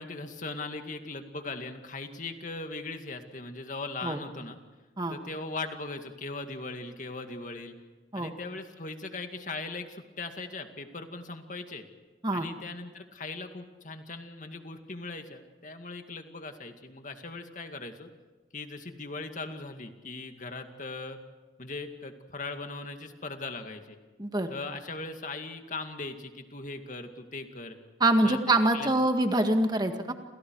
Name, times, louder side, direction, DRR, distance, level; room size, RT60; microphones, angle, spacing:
voice 1, 0.0-4.6 5.1-7.7 8.1-11.8 12.3-18.1 18.5-21.2 21.6-24.0 24.5-27.8 28.2-28.4 28.7-28.9, left 3 dB, 40° left, 6 dB, 2.2 m, -39 dB
voice 2, 28.0-30.1, right 2 dB, 20° right, 6 dB, 1.9 m, -25 dB
29.0 x 28.0 x 4.8 m, 1.3 s
head